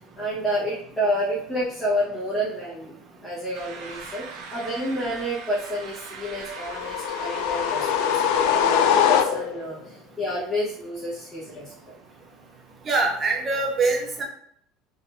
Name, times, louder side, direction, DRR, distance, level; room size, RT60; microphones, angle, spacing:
voice 1, 0.2-2.9 3.2-11.7, equal, 10° left, -10 dB, 1.1 m, -29 dB
sound 1, 3.5-8.6, right 5 dB, 70° right, 0.6 m, -41 dB
sound 2, 6.5-9.7, left 8 dB, 80° left, 0.3 m, -22 dB
voice 2, 12.9-14.2, right 3 dB, 25° right, 1 dB, 0.7 m, -23 dB
3.7 x 2.7 x 2.5 m, 0.65 s
cardioid pair, 150°, 0 cm